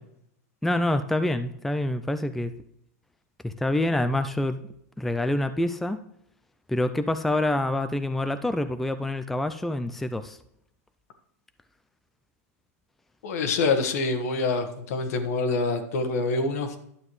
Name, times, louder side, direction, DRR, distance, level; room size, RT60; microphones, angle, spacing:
voice 1, 0.6-2.5 3.4-4.6 5.0-6.0 6.7-10.4, left 1 dB, ahead, 10 dB, 0.4 m, -26 dB
voice 2, 13.2-16.8, left 3 dB, 70° left, 7 dB, 1.5 m, -26 dB
11.0 x 7.0 x 3.2 m, 0.75 s
hypercardioid pair, 130°, 9 cm